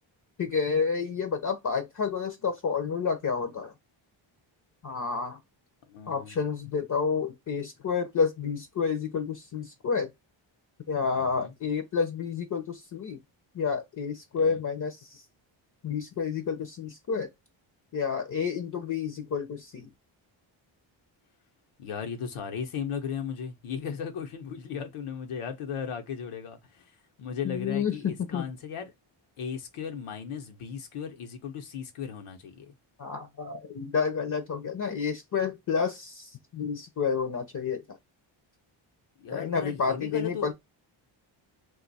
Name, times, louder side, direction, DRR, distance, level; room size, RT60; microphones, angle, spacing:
voice 1, 0.4-3.7 4.8-5.4 6.1-10.1 10.9-13.2 13.5-15.2 15.8-17.3 17.9-19.9 27.4-28.5 33.0-37.8 39.3-40.5, left 5 dB, 40° left, 0.6 m, -30 dB
voice 2, 5.9-6.4 11.1-11.5 14.4-14.6 21.8-26.9 27.2-28.9 29.4-32.7 39.2-40.5, left 7 dB, 85° left, 0.9 m, -36 dB
2.6 x 2.4 x 4.0 m
cardioid pair, 95°, 49 cm